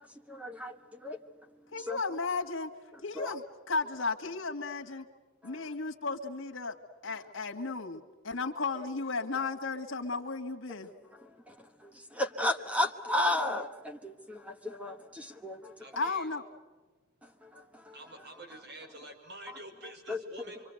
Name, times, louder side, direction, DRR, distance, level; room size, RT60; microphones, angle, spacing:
voice 1, 0.3-0.8 1.0-1.2 1.9-2.0 3.2-3.3 5.4-5.6 11.5-11.6 11.8-15.7 17.5-17.9 20.1-20.2, left 1 dB, 5° right, 6 dB, 1.2 m, -33 dB
voice 2, 1.7-2.7 3.0-5.1 5.4-6.8 7.0-10.9 16.0-16.4, left 3 dB, 70° left, 3 dB, 2.0 m, -34 dB
voice 3, 15.8-16.3 17.9-20.6, right 1 dB, 60° right, 4 dB, 5.3 m, -47 dB
25.5 x 25.0 x 7.9 m, 1.3 s
head